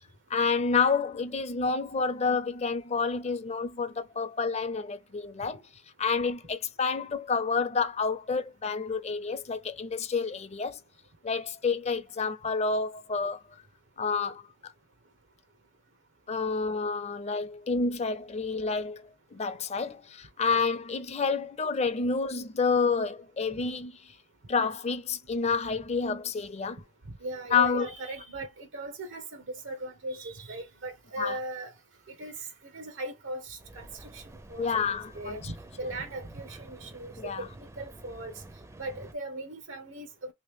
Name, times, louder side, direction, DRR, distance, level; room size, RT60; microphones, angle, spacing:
voice 1, 0.3-5.6 6.0-10.8 11.2-13.4 14.0-14.4 16.3-19.0 19.3-24.1 24.5-26.8 27.5-27.9 31.2-31.3 34.6-35.4 37.2-37.4, left 5 dB, 35° left, 0.5 m, -29 dB
voice 2, 27.1-31.7 32.1-34.2 34.5-38.4 38.8-40.3, right 1 dB, 85° right, 0.9 m, -39 dB
Mechanical fan, 33.6-39.1, right 2 dB, 15° right, 0.4 m, -49 dB
3.1 x 2.9 x 3.4 m
head